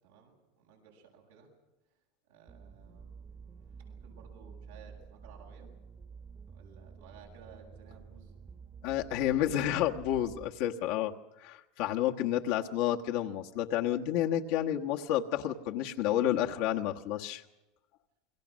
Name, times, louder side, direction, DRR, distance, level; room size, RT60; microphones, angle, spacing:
voice 1, 0.0-1.5 2.3-5.7 6.5-8.3, right 6 dB, 90° right, 0 dB, 7.7 m, -57 dB
sound 1, 2.5-10.5, right 6 dB, 25° right, 1.5 m, -50 dB
voice 2, 8.8-11.1 11.4-17.4, left 11 dB, 65° left, 1 dB, 1.3 m, -30 dB
28.5 x 22.5 x 6.3 m, 0.99 s
supercardioid pair, 125°, 0 cm